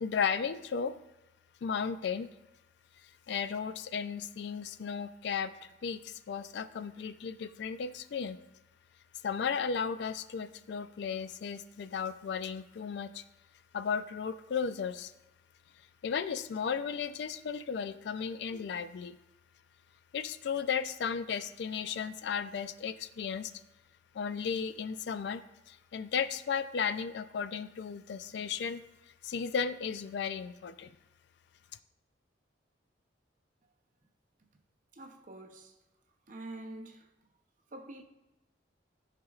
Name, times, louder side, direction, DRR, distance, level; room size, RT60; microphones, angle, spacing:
voice 1, 0.0-0.9 1.6-2.3 3.3-8.4 9.2-13.2 13.7-15.1 16.0-19.2 20.1-23.5 24.1-25.4 25.7-28.8 29.2-30.9, left 6 dB, 65° left, 0.3 m, -35 dB
voice 2, 34.9-35.8 36.3-37.1 37.7-38.0, right 2 dB, 45° right, 0.7 m, -46 dB
12.5 x 5.0 x 2.4 m
head